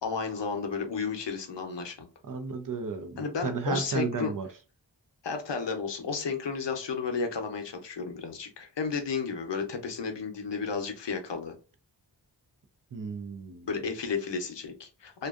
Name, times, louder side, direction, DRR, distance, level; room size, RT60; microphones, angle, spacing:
voice 1, 0.0-2.1 3.2-4.3 5.2-11.5 13.7-15.3, left 5 dB, 75° left, 0.7 m, -33 dB
voice 2, 2.2-4.5 12.9-13.8, right 4 dB, 50° right, 0.5 m, -33 dB
2.5 x 2.2 x 2.3 m
wide cardioid pair, 70°, 43 cm